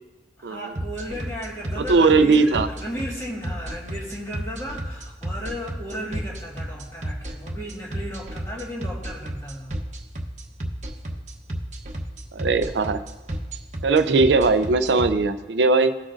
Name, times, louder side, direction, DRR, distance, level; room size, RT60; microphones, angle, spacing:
voice 1, 0.4-9.8, equal, 15° left, -3 dB, 1.7 m, -35 dB
sound 1, 0.8-15.1, right 1 dB, 40° right, 1.0 m, -31 dB
voice 2, 1.9-2.7 12.3-13.0 13.8-15.9, right 3 dB, 85° right, 10 dB, 0.5 m, -19 dB
17.0 x 6.2 x 2.5 m, 1.2 s
head